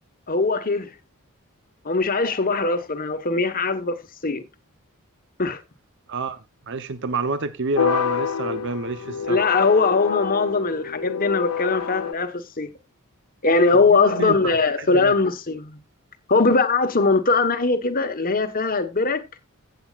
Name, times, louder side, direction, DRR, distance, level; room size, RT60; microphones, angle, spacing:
voice 1, 0.3-0.9 1.8-4.0 4.2-4.4 5.4-5.6 9.3-12.7 13.4-15.8 16.3-19.2, left 3 dB, 40° left, 1.3 m, -21 dB
voice 2, 6.7-9.4 13.9-14.4 14.8-15.1, right 3 dB, 55° right, 0.8 m, -28 dB
sound 1, 7.8-12.1, left 7 dB, 90° left, 0.5 m, -27 dB
16.0 x 8.0 x 2.4 m
head